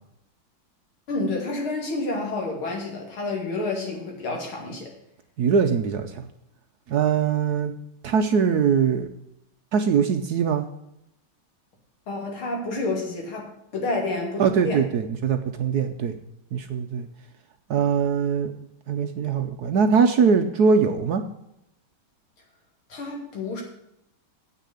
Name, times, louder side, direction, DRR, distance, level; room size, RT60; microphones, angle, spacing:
voice 1, 1.1-4.9 12.1-14.8 22.9-23.6, left 2 dB, 85° left, 0 dB, 3.5 m, -29 dB
voice 2, 5.4-6.2 6.9-7.7 8.0-9.1 9.7-10.6 14.4-16.1 16.5-17.1 17.7-18.5 18.9-21.2, right 6 dB, 65° right, 7 dB, 1.0 m, -22 dB
8.4 x 6.5 x 8.3 m, 0.81 s
omnidirectional pair, 2.2 m